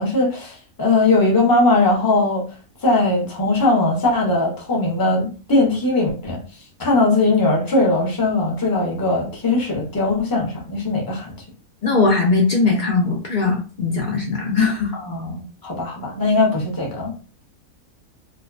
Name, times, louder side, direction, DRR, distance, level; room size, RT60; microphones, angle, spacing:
voice 1, 0.0-2.4 2.8-6.4 6.8-11.3 14.9-17.1, left 2 dB, 25° left, 0.5 m, -19 dB
voice 2, 11.8-14.9, left 3 dB, 80° left, 0.4 m, -19 dB
2.6 x 2.1 x 2.3 m
omnidirectional pair, 1.4 m